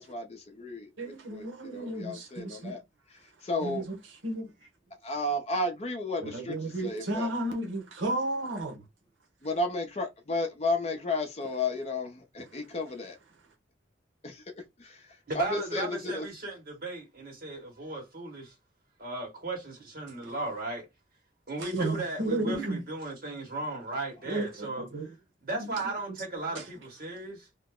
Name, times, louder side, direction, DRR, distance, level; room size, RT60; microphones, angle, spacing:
voice 1, 0.0-2.8 3.1-3.9 5.0-6.5 6.8-7.3 9.4-13.2 14.2-14.4 14.8-16.3, left 2 dB, 35° left, 0.5 m, -33 dB
voice 2, 1.0-2.7 3.6-4.0 4.2-4.5 6.2-8.8 20.2-20.3 21.6-22.8 24.3-25.1 25.5-25.7 26.5-26.6, right 2 dB, 85° right, 1.0 m, -33 dB
voice 3, 15.3-18.5 19.0-20.8 21.5-25.1 25.4-27.5, right 2 dB, 50° right, 1.8 m, -36 dB
2.9 x 2.1 x 3.6 m
head